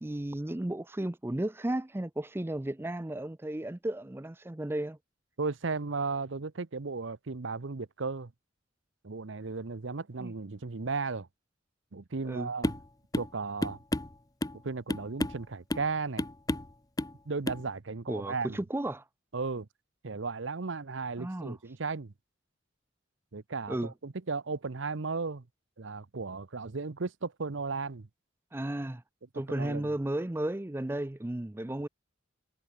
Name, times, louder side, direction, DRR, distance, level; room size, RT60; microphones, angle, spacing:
voice 1, 0.0-5.0 10.2-10.3 12.2-12.5 18.1-19.1 21.2-21.6 23.7-23.9 28.5-29.0 29.3-31.9, right 1 dB, 10° right, 0.5 m, -34 dB
voice 2, 5.4-8.3 9.0-11.3 11.9-12.7 13.2-13.8 14.6-16.3 17.3-18.6 19.3-19.7 20.0-22.1 23.3-25.4 25.8-28.1 29.5-29.9, right 4 dB, 65° right, 0.8 m, -35 dB
sound 1, 12.6-12.9 13.1-13.3 13.6-14.6 14.9-15.4 15.7-15.9 16.2-16.7 17.0-17.2 17.5-17.6, left 1 dB, 20° left, 0.8 m, -32 dB
head